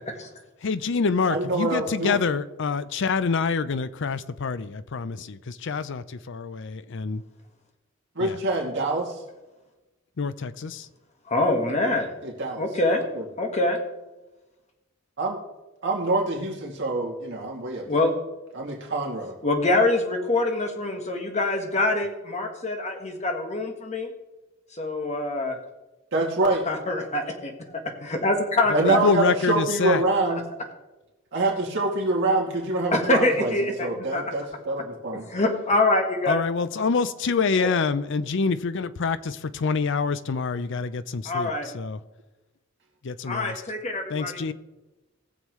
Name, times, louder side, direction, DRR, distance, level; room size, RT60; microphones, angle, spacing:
voice 1, 0.6-7.2 8.2-8.4 10.2-10.9 28.7-30.0 36.3-42.0 43.0-43.5 44.1-44.5, left 5 dB, 65° left, 0.5 m, -26 dB
voice 2, 1.3-2.2 8.2-9.2 12.2-12.6 13.1-13.2 15.2-15.4 15.8-17.9 18.5-19.3 26.1-26.6 28.7-30.4 31.3-35.2, right 2 dB, 65° right, 2.4 m, -25 dB
voice 3, 11.3-12.1 12.6-13.8 17.9-18.1 19.4-24.1 24.7-25.5 26.6-29.0 32.9-34.3 35.1-36.4 37.5-37.7 41.2-41.7 43.3-44.3, left 2 dB, 35° left, 1.5 m, -25 dB
19.0 x 7.3 x 3.1 m
head